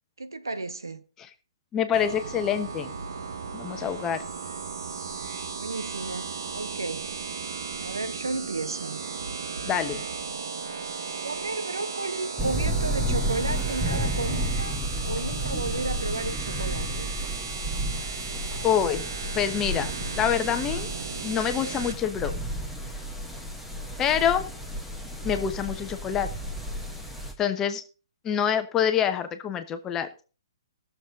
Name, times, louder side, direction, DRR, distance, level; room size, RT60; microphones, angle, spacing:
voice 1, 0.2-1.0 5.6-7.1 7.8-9.1 11.2-14.8 15.0-17.1, right 3 dB, 75° right, 1.2 m, -33 dB
voice 2, 1.7-2.9 3.5-4.2 9.7-10.0 18.6-19.0 19.3-19.9 20.2-20.9 21.2-22.3 24.0-24.5 25.2-26.3 27.4-27.8 28.2-30.1, left 8 dB, 20° left, 1.1 m, -26 dB
sound 1, 1.9-21.9, right 5 dB, 60° right, 1.6 m, -36 dB
sound 2, 12.4-27.3, equal, 5° right, 1.7 m, -32 dB
18.0 x 7.0 x 3.9 m
figure-of-eight pair, 125°, 2 cm